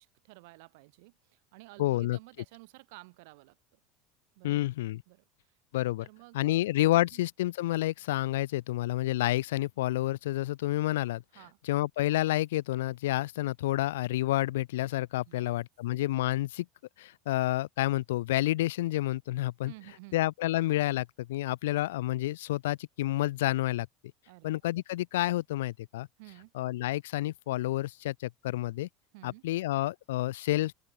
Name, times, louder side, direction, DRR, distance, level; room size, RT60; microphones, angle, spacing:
voice 1, 0.0-3.8 4.3-4.7 5.1-5.6 6.0-6.7 7.1-7.2 11.3-11.6 15.2-15.6 19.6-20.2 24.3-24.5 26.2-26.5 29.1-29.4, right 26 dB, 75° right, 1.5 m, -53 dB
voice 2, 1.8-2.2 4.4-5.0 5.7-6.1 6.3-11.2 11.7-16.7 17.0-19.7 20.1-23.9 24.4-26.1 26.6-28.9 29.2-30.7, left 16 dB, 85° left, 0.5 m, -29 dB
open air
supercardioid pair, 95°, 0 cm